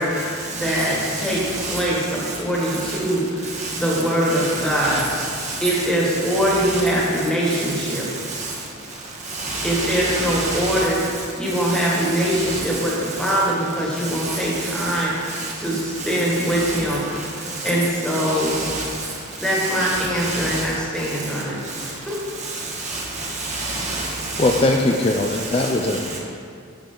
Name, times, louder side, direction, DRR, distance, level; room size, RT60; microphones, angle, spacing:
voice 1, 0.0-5.0 5.6-8.1 9.6-11.0 11.4-17.4 17.6-18.5 19.4-22.2, equal, 5° left, 1.7 m, -23 dB
voice 2, 0.6-1.8 2.9-3.0 3.6-4.0 4.3-5.8 6.3-6.8 7.9-8.0 8.3-8.5 9.3-10.8 11.6-12.8 13.2-13.3 14.0-14.4 14.7-15.0 15.3-15.5 16.4-16.8 17.5-17.7 18.1-18.8 19.5-20.6 22.4-24.6 25.6-25.7, right 3 dB, 35° right, 1.4 m, -29 dB
voice 3, 24.4-26.2, left 2 dB, 30° left, 0.4 m, -20 dB
10.5 x 6.9 x 3.9 m
head